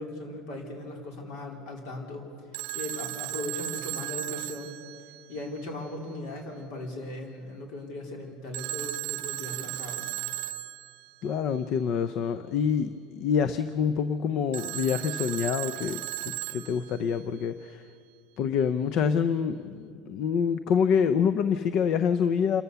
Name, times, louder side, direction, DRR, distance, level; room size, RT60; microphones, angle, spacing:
voice 1, 0.0-2.3 2.7-4.8 5.3-10.1, left 1 dB, 70° left, 1 dB, 4.3 m, -38 dB
Telephone, 2.5-5.6 8.5-11.1 14.5-17.2, right 17 dB, 70° right, 0.6 m, -36 dB
voice 2, 11.2-17.9 18.4-22.6, left 7 dB, 55° left, 11 dB, 0.6 m, -26 dB
28.0 x 13.5 x 7.0 m, 2.3 s
supercardioid pair, 130°, 0 cm